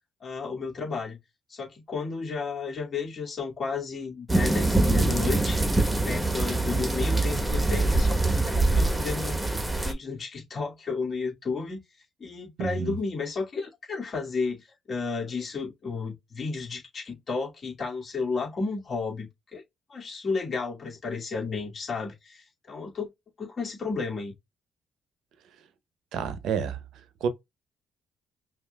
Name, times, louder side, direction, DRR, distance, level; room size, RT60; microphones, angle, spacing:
voice 1, 0.2-1.2 1.5-5.6 6.1-9.4 9.8-11.8 12.2-19.6 19.9-23.1 23.4-24.3, left 4 dB, 45° left, 2.4 m, -33 dB
sound 1, 4.3-9.9, right 2 dB, 10° right, 1.1 m, -24 dB
voice 2, 12.6-13.0 26.1-27.3, right 7 dB, 80° right, 0.8 m, -30 dB
5.7 x 2.6 x 2.3 m
cardioid pair, 90°, 0 cm